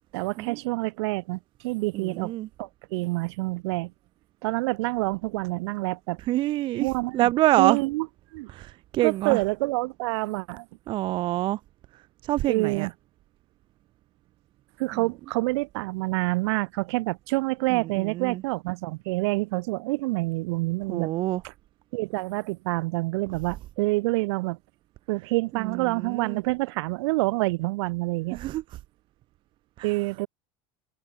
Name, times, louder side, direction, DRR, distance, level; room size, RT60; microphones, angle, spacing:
voice 1, 0.1-2.3 2.6-3.9 4.4-6.2 6.8-7.3 7.6-8.1 8.3-8.5 9.0-10.7 12.5-12.9 14.8-21.1 21.4-21.5 21.9-24.6 25.1-28.4 29.8-30.3, right 23 dB, 80° right, 4.5 m, -27 dB
voice 2, 1.9-2.5 6.3-6.9 7.1-7.8 8.5-9.4 10.9-11.6 12.2-12.9 14.9-15.0 17.7-18.4 20.9-21.4 25.5-26.4 28.3-28.6 29.8-29.9, right 16 dB, 35° right, 1.1 m, -26 dB
cardioid pair, 175°, 14 cm